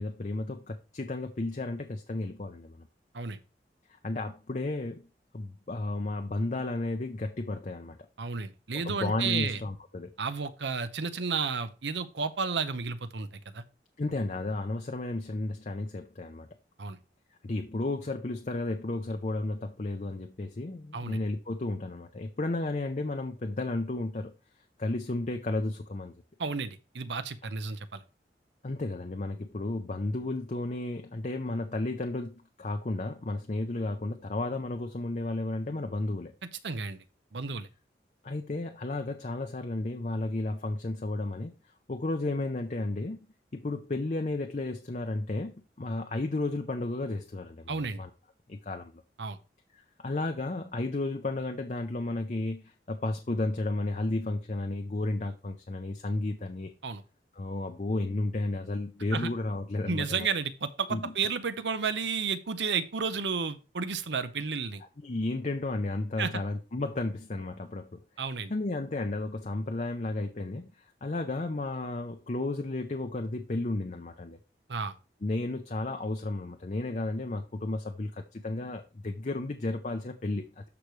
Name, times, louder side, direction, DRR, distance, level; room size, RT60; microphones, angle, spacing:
voice 1, 0.0-2.8 3.9-5.1 5.3-8.0 8.7-10.1 14.0-16.5 17.4-24.3 24.8-26.1 28.6-36.3 38.2-41.5 41.9-43.2 43.5-48.1 48.5-49.0 49.8-56.7 57.4-60.3 60.9-61.1 65.0-68.0 68.5-74.4 75.2-80.6, left 2 dB, 40° left, 0.6 m, -33 dB
voice 2, 8.2-9.6 10.2-13.6 16.8-17.0 20.9-21.2 26.4-28.0 36.4-37.0 37.3-37.7 47.7-48.0 49.2-49.4 56.8-57.0 59.1-59.3 59.9-64.8 66.2-66.4 68.2-68.5 74.7-74.9, right 5 dB, 85° right, 0.8 m, -32 dB
13.0 x 5.0 x 3.2 m
head